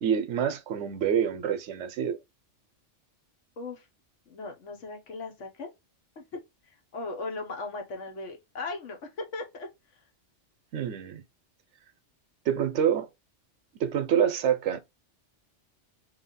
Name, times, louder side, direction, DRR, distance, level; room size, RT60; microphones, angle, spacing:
voice 1, 0.0-2.2 10.7-11.2 12.5-13.1 13.8-14.8, right 8 dB, 75° right, 0.9 m, -26 dB
voice 2, 4.3-5.7 6.2-6.3 6.9-9.7, left 3 dB, 80° left, 1.3 m, -37 dB
3.0 x 2.7 x 3.9 m
omnidirectional pair, 1.2 m